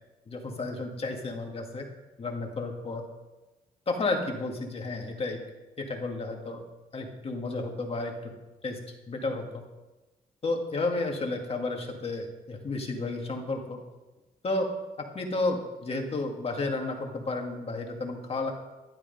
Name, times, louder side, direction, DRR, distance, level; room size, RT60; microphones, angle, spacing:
voice 1, 0.3-1.8 2.2-3.0 3.9-5.4 5.8-6.6 6.9-8.3 8.6-8.8 9.1-9.6 10.4-13.8 14.4-14.7 15.1-18.5, left 2 dB, 35° left, 2 dB, 2.0 m, -32 dB
12.0 x 11.0 x 5.4 m, 1.1 s
cardioid pair, 135°, 17 cm